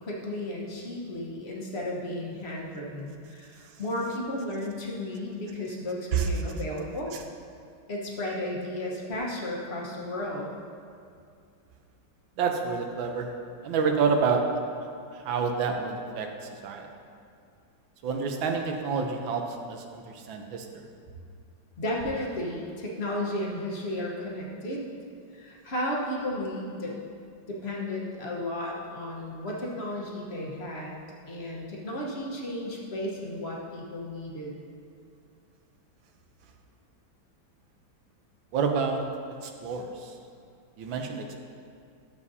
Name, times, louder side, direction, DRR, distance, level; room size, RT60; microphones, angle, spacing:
voice 1, 0.0-7.1 7.9-10.5 21.8-24.8 25.3-26.9 27.5-31.0 31.3-34.5, left 1 dB, 40° left, -3 dB, 1.2 m, -33 dB
voice 2, 12.4-13.3 13.6-14.4 15.2-16.3 16.6-16.9 18.0-19.4 19.7-20.6 38.5-39.0 39.4-39.9 40.8-41.3, right 5 dB, 85° right, 3 dB, 1.5 m, -28 dB
12.0 x 7.2 x 2.7 m, 2.4 s
omnidirectional pair, 2.1 m